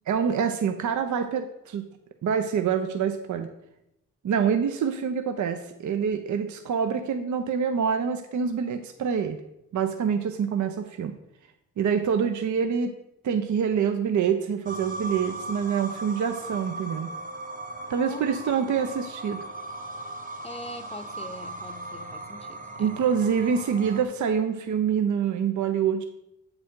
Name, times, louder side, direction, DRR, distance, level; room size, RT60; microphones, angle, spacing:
voice 1, 0.1-1.9 2.2-3.5 4.2-9.4 9.7-11.1 11.8-12.9 13.2-17.1 17.9-19.5 22.8-26.0, right 7 dB, 60° right, 7 dB, 0.6 m, -26 dB
sound 1, 14.7-24.0, right 2 dB, 25° right, 0.8 m, -38 dB
voice 2, 18.0-18.4 20.4-22.9, left 2 dB, 20° left, 9 dB, 0.7 m, -42 dB
7.4 x 4.8 x 3.7 m, 0.84 s
cardioid pair, 60°, 34 cm